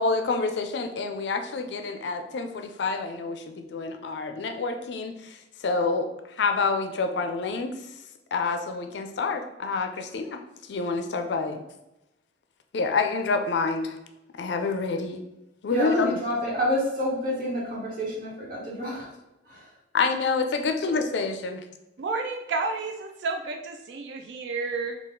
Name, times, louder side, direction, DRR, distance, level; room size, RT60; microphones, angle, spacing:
voice 1, 0.0-5.4 5.6-6.1 6.4-7.7 8.3-10.4 10.7-11.6 12.7-14.0 14.4-15.2 15.6-16.2 19.9-21.6, left 4 dB, 70° left, 6 dB, 0.4 m, -27 dB
voice 2, 15.7-19.1 19.5-19.6, equal, 50° right, -4 dB, 1.2 m, -28 dB
voice 3, 22.0-25.0, right 3 dB, 70° right, 4 dB, 0.4 m, -31 dB
4.0 x 2.4 x 3.7 m, 0.95 s
head